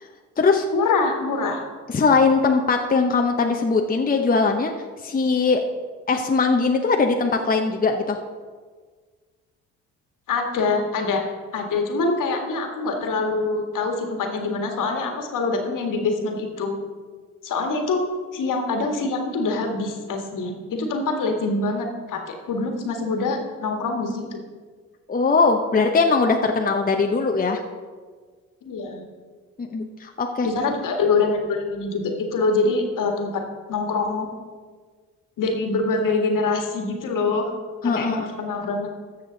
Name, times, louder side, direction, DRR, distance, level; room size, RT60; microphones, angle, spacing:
voice 1, 0.7-1.6 10.3-11.2 11.5-16.8 17.4-18.0 18.3-24.3 28.6-29.0 30.4-33.4 33.7-34.3 35.4-37.5 37.8-38.9, left 3 dB, 60° left, 3 dB, 1.8 m, -24 dB
voice 2, 1.9-4.7 5.0-5.6 6.1-8.2 20.7-20.9 25.1-27.6 29.6-30.5 37.8-38.3, left 4 dB, 25° left, 3 dB, 0.9 m, -20 dB
13.5 x 6.6 x 4.0 m, 1.5 s
hypercardioid pair, 55°, 36 cm